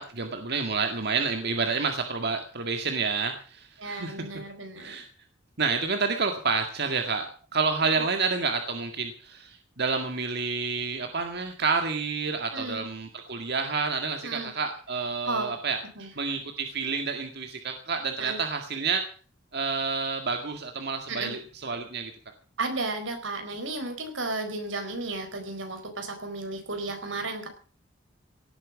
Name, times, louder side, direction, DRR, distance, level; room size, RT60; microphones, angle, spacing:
voice 1, 0.0-4.2 4.8-5.1 5.6-15.8 16.2-19.0 19.5-22.1, right 4 dB, 60° right, 5 dB, 2.0 m, -29 dB
voice 2, 3.8-5.0 12.5-12.8 14.2-14.5 15.2-15.5 15.9-16.1 18.2-18.4 21.1-21.4 22.6-27.5, right 3 dB, 90° right, 5 dB, 4.8 m, -33 dB
17.5 x 9.3 x 7.3 m, 0.40 s
head